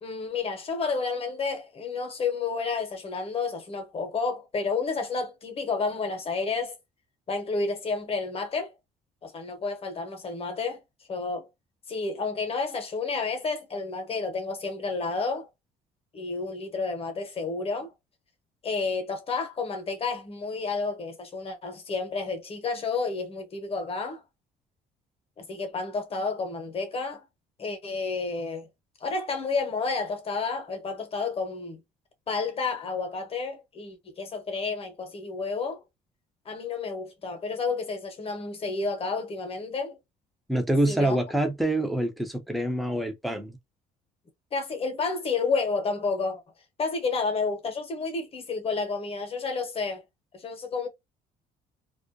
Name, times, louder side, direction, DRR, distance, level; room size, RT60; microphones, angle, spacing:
voice 1, 0.0-6.8 7.3-8.7 9.2-10.8 11.1-11.5 11.9-15.5 16.1-17.9 18.6-24.2 25.4-27.3 27.6-28.7 29.0-31.8 32.3-35.8 36.5-40.0 40.9-41.2 44.5-46.4 46.8-50.0 50.3-50.9, left 4 dB, 35° left, 0.9 m, -30 dB
voice 2, 40.5-43.6, right 1 dB, ahead, 0.6 m, -26 dB
2.3 x 2.1 x 2.6 m
cardioid pair, 110°, 17 cm